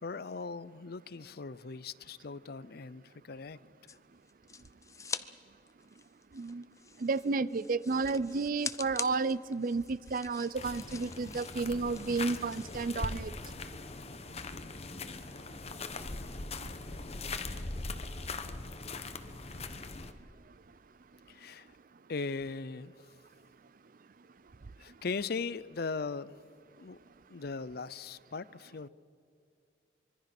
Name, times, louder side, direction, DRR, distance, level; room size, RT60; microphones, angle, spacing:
voice 1, 0.0-3.6 21.3-21.7 22.1-22.9 24.8-26.3 26.8-27.0 27.3-28.9, left 4 dB, 60° left, 18 dB, 0.6 m, -39 dB
sound 1, 3.9-5.3 5.6-13.0, left 5 dB, 20° left, 0.6 m, -44 dB
voice 2, 7.0-13.4, right 4 dB, 50° right, 19 dB, 0.5 m, -32 dB
sound 2, 10.5-20.1, left 3 dB, 35° left, 1.1 m, -41 dB
25.0 x 23.5 x 6.0 m, 2.3 s
head